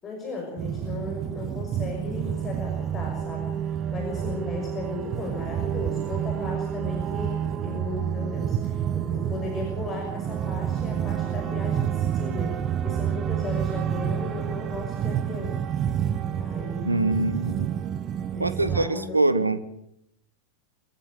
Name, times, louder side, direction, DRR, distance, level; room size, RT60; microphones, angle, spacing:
voice 1, 0.0-12.6 12.8-15.6 16.3-17.2 18.3-19.2, left 3 dB, 25° left, 1 dB, 6.0 m, -36 dB
sound 1, 0.6-18.9, right 9 dB, 30° right, 1.2 m, -29 dB
voice 2, 16.8-17.7 18.4-19.6, right 2 dB, 80° right, 14 dB, 1.1 m, -24 dB
25.0 x 14.5 x 7.8 m, 0.77 s
figure-of-eight pair, 90°, 0 cm